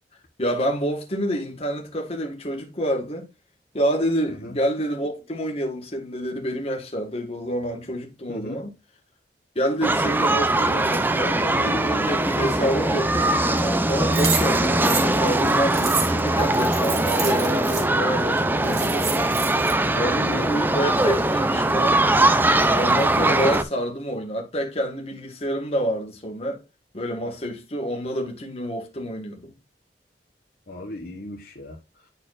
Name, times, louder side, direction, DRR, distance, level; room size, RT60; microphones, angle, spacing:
voice 1, 0.4-3.3 3.7-8.7 9.5-19.1 19.9-22.1 22.7-26.6 26.9-29.5, equal, 35° left, 1.6 m, -28 dB
voice 2, 8.3-8.6 19.8-20.6 30.7-31.8, left 1 dB, 55° left, 1.3 m, -36 dB
sound 1, 9.8-23.6, right 2 dB, 10° right, 0.5 m, -21 dB
sound 2, 14.1-17.8 18.4-18.5 18.6-19.7, right 6 dB, 70° right, 2.6 m, -29 dB
10.5 x 4.4 x 2.5 m
head